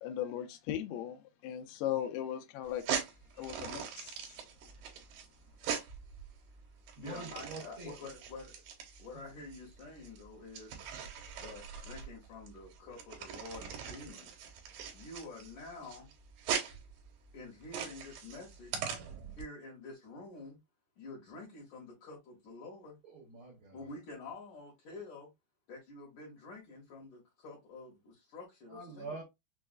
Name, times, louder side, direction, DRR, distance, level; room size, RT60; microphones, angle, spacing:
voice 1, 0.0-2.9 3.4-4.3, left 11 dB, 85° left, 2.6 m, -38 dB
sound 1, 2.7-19.4, right 7 dB, 75° right, 2.4 m, -41 dB
voice 2, 4.3-4.9 5.9-6.1 6.6-8.5 9.0-10.8 11.4-14.4 14.9-16.1 17.3-18.9 19.4-20.6 21.0-23.0 23.7-25.3 25.7-29.2, left 3 dB, 65° left, 2.2 m, -48 dB
voice 3, 7.0-7.9 23.0-23.8 28.7-29.2, right 4 dB, 90° right, 1.1 m, -45 dB
6.1 x 2.3 x 2.3 m
omnidirectional pair, 4.5 m